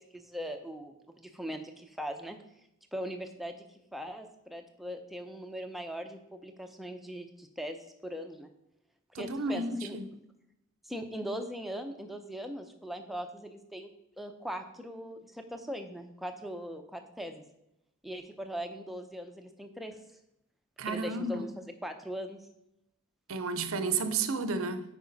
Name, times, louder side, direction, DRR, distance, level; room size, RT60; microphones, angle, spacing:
voice 1, 0.1-2.4 2.9-3.6 3.9-8.5 9.2-10.0 10.8-13.9 14.2-17.4 18.0-20.0 20.9-22.4, equal, ahead, 0.6 m, -40 dB
voice 2, 9.1-10.0 20.8-21.4 23.3-24.8, right 3 dB, 70° right, 0.6 m, -32 dB
9.3 x 4.8 x 4.0 m
head